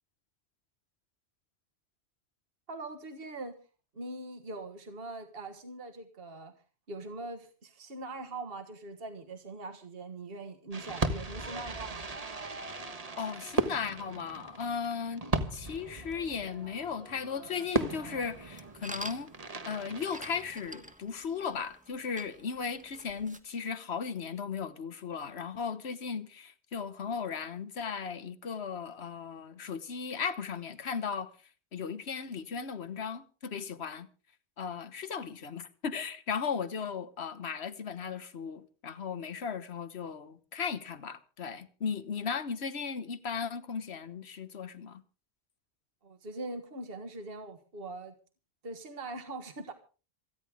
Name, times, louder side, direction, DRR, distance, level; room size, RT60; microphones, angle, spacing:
voice 1, 2.7-3.6 3.9-6.5 6.9-12.1 46.0-48.1 48.6-49.7, right 2 dB, 60° right, 1.7 m, -42 dB
Fireworks, 10.7-20.9, right 2 dB, 35° right, 1.4 m, -37 dB
voice 2, 13.2-15.2 15.5-19.3 19.7-31.3 31.7-34.1 34.6-45.0, left 6 dB, 80° left, 1.4 m, -36 dB
sound 1, 18.2-23.4, right 1 dB, 5° right, 1.3 m, -48 dB
27.5 x 10.5 x 3.5 m
omnidirectional pair, 1.1 m